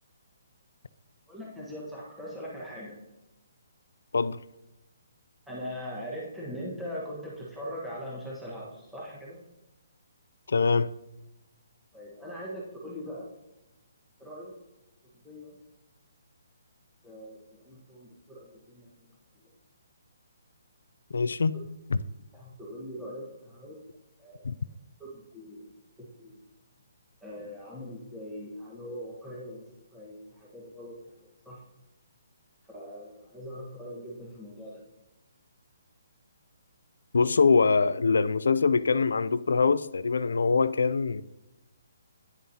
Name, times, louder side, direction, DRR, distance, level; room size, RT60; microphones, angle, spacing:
voice 1, 1.3-3.0 5.5-9.4 11.9-13.3 14.2-14.5 15.2-15.5 17.0-19.1 19.4-19.5 22.0-23.8 24.2-24.5 25.1-25.7 26.0-26.4 27.2-31.0 31.4-31.6 32.7-34.8, equal, ahead, 1.4 m, -41 dB
voice 2, 10.5-10.9 21.1-21.6 21.9-22.0 24.4-24.5 37.1-41.2, left 4 dB, 85° left, 0.3 m, -23 dB
10.0 x 7.3 x 2.8 m
hypercardioid pair, 175°, 0 cm